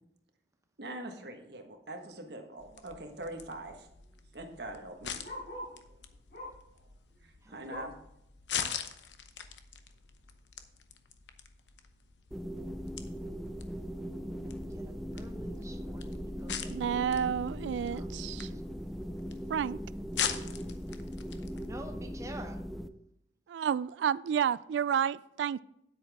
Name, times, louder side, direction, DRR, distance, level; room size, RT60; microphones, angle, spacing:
voice 1, 0.8-3.9 4.3-5.2 5.5-5.8 7.5-7.9, right 1 dB, 65° right, 1.4 m, -43 dB
sound 1, 2.6-21.7, left 8 dB, 85° left, 0.8 m, -43 dB
Bark, 3.8-5.8 6.3-6.7 7.1-8.1 8.5-8.6 9.0-9.1 9.8-9.9, left 1 dB, 65° left, 4.2 m, -46 dB
voice 2, 7.4-7.9 14.4-17.3 17.8-18.6 21.6-22.6, right 1 dB, 20° right, 0.9 m, -49 dB
sound 2, 12.3-22.9, equal, ahead, 0.4 m, -39 dB
voice 3, 16.7-18.5 19.5-19.8 23.5-25.6, right 8 dB, 85° right, 0.3 m, -30 dB
9.7 x 8.5 x 3.6 m
head